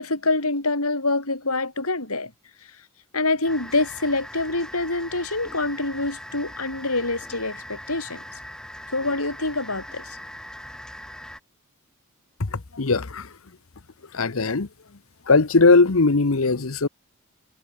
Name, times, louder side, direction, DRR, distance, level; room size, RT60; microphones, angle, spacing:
voice 1, 0.0-2.3 3.1-8.2 8.9-10.2, left 2 dB, 90° left, 6.3 m, -26 dB
sound 1, 3.4-11.4, left 1 dB, 5° left, 3.0 m, -40 dB
voice 2, 12.4-13.3 14.1-14.7 15.3-16.9, left 3 dB, 70° left, 1.0 m, -19 dB
head